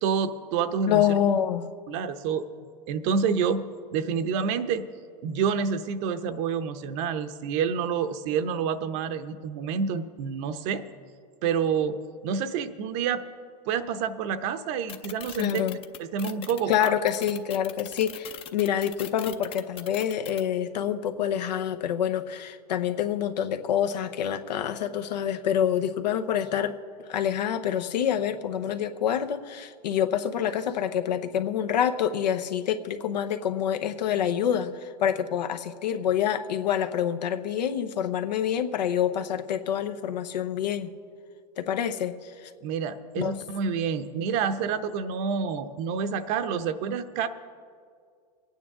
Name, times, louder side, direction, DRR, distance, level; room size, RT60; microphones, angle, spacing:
voice 1, 0.0-1.0 1.9-2.4 2.9-3.6 3.9-4.8 5.2-10.8 11.4-12.0 12.2-13.2 13.7-17.0 42.6-47.3, right 6 dB, 50° right, 10 dB, 0.8 m, -28 dB
voice 2, 0.9-1.6 15.4-15.8 16.7-26.8 27.1-40.9 41.6-42.5 43.2-43.4, left 9 dB, 90° left, 8 dB, 0.9 m, -27 dB
sound 1, 14.9-20.4, left 9 dB, 25° left, 0.6 m, -40 dB
25.0 x 9.2 x 3.7 m, 2.1 s
supercardioid pair, 130°, 21 cm